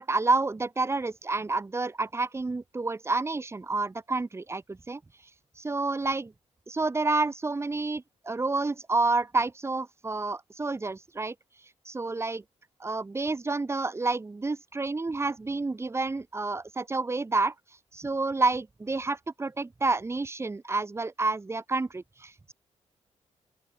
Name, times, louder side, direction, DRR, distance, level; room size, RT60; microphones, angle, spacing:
voice 1, 0.0-5.0 5.6-6.3 6.7-11.3 11.9-12.4 12.8-17.5 17.9-22.5, right 3 dB, 20° right, 7.7 m, -29 dB
open air
wide cardioid pair, 140°, 12 cm